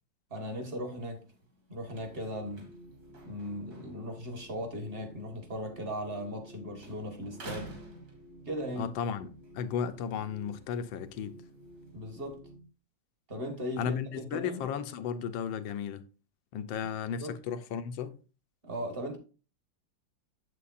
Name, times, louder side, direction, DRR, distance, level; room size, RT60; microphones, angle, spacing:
voice 1, 0.3-1.2 1.7-2.7 3.2-7.7 8.4-8.9 11.9-12.4 13.3-14.7 17.2-17.4 18.6-19.2, equal, 30° right, 1.5 m, -38 dB
sound 1, 0.9-6.5 6.8-8.8 9.3-12.4, right 2 dB, 55° right, 3.2 m, -53 dB
sound 2, 1.8-12.7, right 1 dB, 70° right, 0.7 m, -53 dB
voice 2, 8.8-11.4 13.8-16.0 16.5-18.2, left 7 dB, 85° left, 1.4 m, -34 dB
8.3 x 7.6 x 2.5 m
omnidirectional pair, 2.1 m